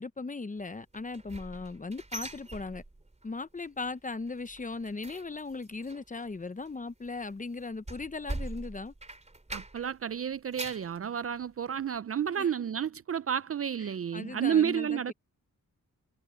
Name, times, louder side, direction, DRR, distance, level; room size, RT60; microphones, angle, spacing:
voice 1, 0.0-2.8 3.2-8.9 12.4-12.5 13.8-15.1, left 3 dB, 25° left, 0.7 m, -38 dB
sound 1, 0.9-3.3 3.6-3.9 4.2-10.0 10.3-10.9 11.4-11.5 12.0-12.1, right 2 dB, 20° right, 3.6 m, -42 dB
voice 2, 9.5-15.1, right 8 dB, 45° right, 0.4 m, -31 dB
wide cardioid pair, 105°, 34 cm